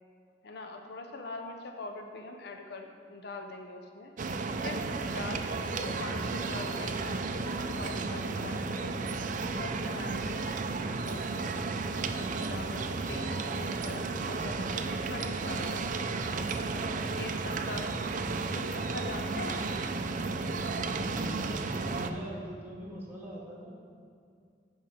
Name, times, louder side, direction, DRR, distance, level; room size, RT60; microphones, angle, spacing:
voice 1, 0.4-4.1 4.6-4.8 5.1-5.5 5.7-8.9 9.4-10.5 10.9-11.5 12.1-16.2 16.7-16.9 17.2-17.9 18.5-19.7, left 3 dB, 65° left, 4 dB, 0.6 m, -43 dB
sound 1, 4.2-22.1, right 3 dB, 45° right, 0.4 m, -33 dB
voice 2, 21.0-23.8, equal, 15° right, -6 dB, 1.8 m, -43 dB
9.6 x 5.6 x 4.9 m, 2.3 s
head